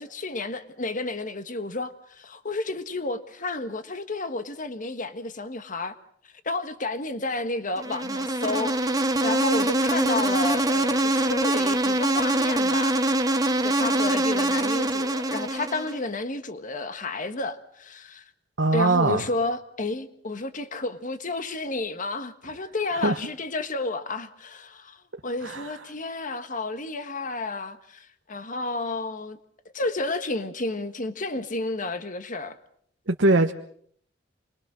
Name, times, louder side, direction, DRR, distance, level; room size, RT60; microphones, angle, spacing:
voice 1, 0.0-5.9 6.2-8.8 9.2-12.9 13.6-18.3 18.7-29.4 29.7-32.6, left 3 dB, 45° left, 1.5 m, -31 dB
Insect, 7.8-16.0, right 1 dB, 20° right, 1.5 m, -24 dB
voice 2, 18.6-19.2 23.0-23.2 25.4-25.7 33.1-33.5, right 2 dB, 80° right, 1.2 m, -21 dB
28.5 x 22.0 x 6.3 m
head